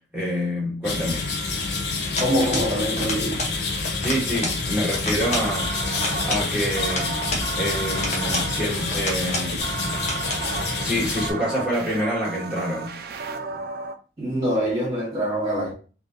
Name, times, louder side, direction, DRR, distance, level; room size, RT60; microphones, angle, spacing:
voice 1, 0.1-1.3 4.0-5.7 6.3-7.2 7.6-9.6 10.8-13.0, equal, 5° right, 1.8 m, -27 dB
sound 1, 0.8-11.3, left 3 dB, 70° left, 0.7 m, -28 dB
sound 2, 2.2-2.7 3.0-3.6 3.9-4.6 4.9-5.5 5.9-7.5 8.0-8.5 8.9-9.5 9.9-10.5, left 2 dB, 40° left, 0.9 m, -30 dB
voice 2, 2.2-3.5 14.2-15.7, equal, 25° right, 1.7 m, -24 dB
sound 3, 5.1-13.9, right 4 dB, 55° right, 0.4 m, -33 dB
3.6 x 2.8 x 2.6 m
head